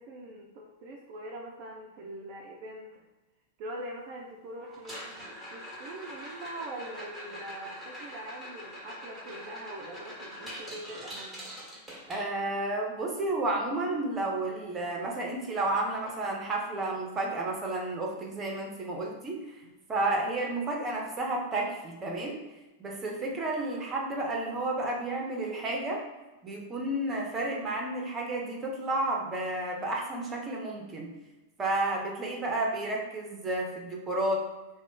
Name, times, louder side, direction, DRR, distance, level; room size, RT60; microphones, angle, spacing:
voice 1, 0.0-3.0 3.6-11.5, right 1 dB, 45° right, -1 dB, 0.4 m, -43 dB
sound 1, 4.7-12.7 15.0-15.1 15.3-15.6 16.1-16.2 16.7-16.8 18.7-18.8, equal, 5° right, 1.2 m, -44 dB
voice 2, 12.1-19.5 19.9-22.4 22.8-26.0 26.4-31.1 31.6-34.4, right 2 dB, 20° right, -1 dB, 0.7 m, -31 dB
2.4 x 2.1 x 3.6 m, 1.1 s
figure-of-eight pair, 95°, 0 cm